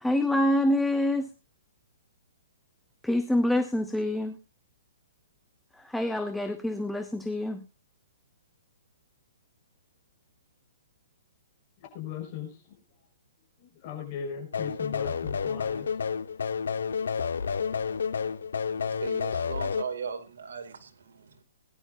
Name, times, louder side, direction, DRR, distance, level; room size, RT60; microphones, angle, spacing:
voice 1, 0.0-1.3 3.0-4.3 5.9-7.6, left 1 dB, ahead, 0.8 m, -26 dB
voice 2, 11.9-12.8 13.6-15.9 17.9-18.0, left 7 dB, 35° left, 6.1 m, -38 dB
sound 1, 14.5-19.8, left 6 dB, 90° left, 1.2 m, -30 dB
voice 3, 19.0-21.4, right 6 dB, 80° right, 2.6 m, -38 dB
21.0 x 11.5 x 2.7 m
hypercardioid pair, 160°, 0 cm